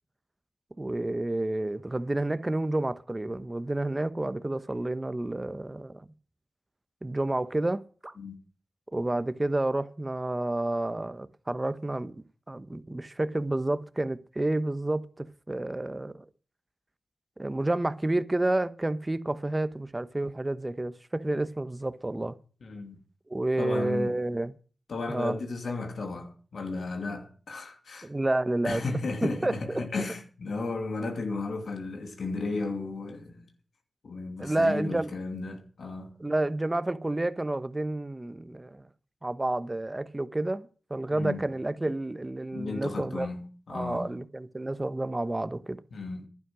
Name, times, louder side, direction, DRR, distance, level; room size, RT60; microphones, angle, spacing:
voice 1, 0.8-6.0 7.0-8.2 8.9-16.3 17.4-22.4 23.3-24.6 25.1-25.4 28.0-28.8 29.2-29.8 34.4-35.1 36.2-38.9 39.2-43.3 43.7-45.8, right 2 dB, 25° right, 1.1 m, -30 dB
voice 2, 22.6-23.0 23.6-24.1 24.9-28.1 28.6-33.4 34.0-36.2 41.1-41.4 42.5-44.1 45.9-46.3, left 3 dB, 80° left, 2.7 m, -34 dB
11.0 x 9.8 x 6.3 m
cardioid pair, 50°, 0 cm